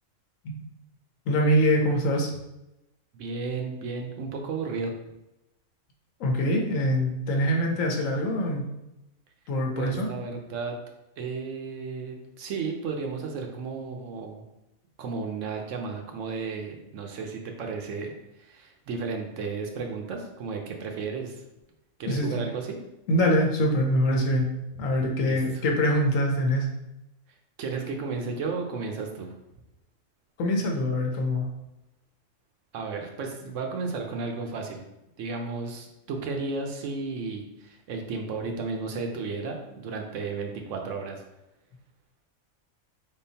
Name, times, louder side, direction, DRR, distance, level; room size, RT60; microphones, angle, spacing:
voice 1, 1.3-2.3 6.2-8.6 9.5-10.1 22.0-22.3 23.1-24.5 24.8-26.7 30.4-31.5, equal, 75° left, 1 dB, 1.1 m, -24 dB
voice 2, 3.1-4.9 9.8-10.7 11.2-14.4 15.0-18.1 18.4-21.4 22.0-22.8 25.2-25.6 27.6-29.3 32.7-34.8 35.2-41.2, right 4 dB, 70° right, 3 dB, 1.0 m, -33 dB
4.4 x 3.7 x 2.7 m, 0.92 s
omnidirectional pair, 1.4 m